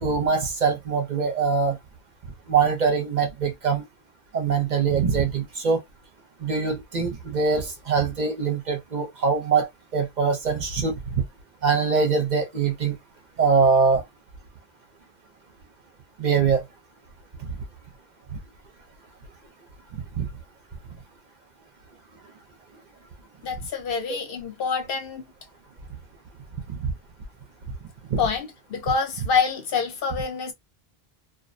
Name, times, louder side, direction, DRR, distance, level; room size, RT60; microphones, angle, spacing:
voice 1, 0.0-1.8 2.5-3.8 4.3-5.8 6.4-9.7 9.9-10.9 11.6-13.0 13.4-14.0 16.2-16.6 20.2-20.3 28.1-28.2, right 5 dB, 50° right, 0.7 m, -23 dB
voice 2, 23.4-25.2 28.2-30.5, left 5 dB, 70° left, 0.9 m, -26 dB
2.5 x 2.0 x 2.5 m
omnidirectional pair, 1.0 m